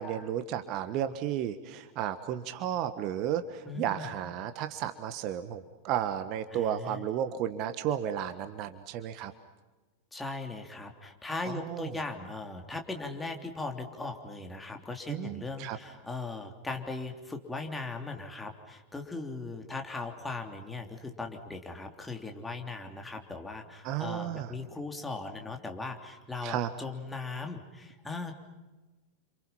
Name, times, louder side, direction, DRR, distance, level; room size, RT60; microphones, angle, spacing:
voice 1, 0.0-9.3 11.4-11.9 15.1-15.8 23.8-24.5 26.4-26.7, right 10 dB, 40° right, 10 dB, 1.4 m, -33 dB
voice 2, 3.6-4.1 6.5-7.0 10.1-28.3, left 3 dB, 10° left, 3 dB, 3.2 m, -39 dB
30.0 x 27.0 x 5.7 m, 1.2 s
figure-of-eight pair, 90°, 0 cm